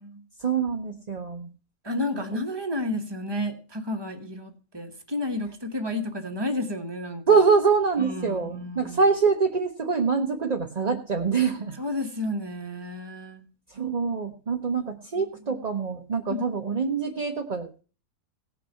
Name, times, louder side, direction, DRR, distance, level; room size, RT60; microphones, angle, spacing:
voice 1, 0.4-1.5 2.1-2.2 7.3-11.8 13.7-17.7, right 5 dB, 35° right, 3 dB, 0.7 m, -24 dB
voice 2, 1.8-7.4 8.0-9.0 11.8-13.4 15.5-15.6 16.3-16.5, left 1 dB, 15° right, 5 dB, 1.1 m, -31 dB
17.0 x 6.0 x 5.6 m, 0.38 s
omnidirectional pair, 1.7 m